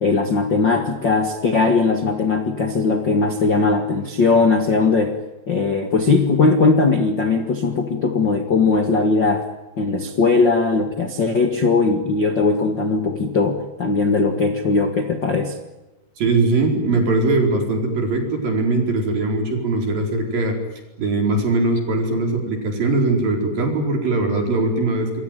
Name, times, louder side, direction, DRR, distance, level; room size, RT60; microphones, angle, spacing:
voice 1, 0.0-5.2 5.5-9.5 9.8-15.6, left 4 dB, 90° left, 7 dB, 1.0 m, -19 dB
voice 2, 16.2-20.6 21.0-25.2, right 2 dB, 50° right, 3 dB, 5.9 m, -20 dB
28.0 x 23.0 x 9.2 m, 1.0 s
omnidirectional pair, 5.4 m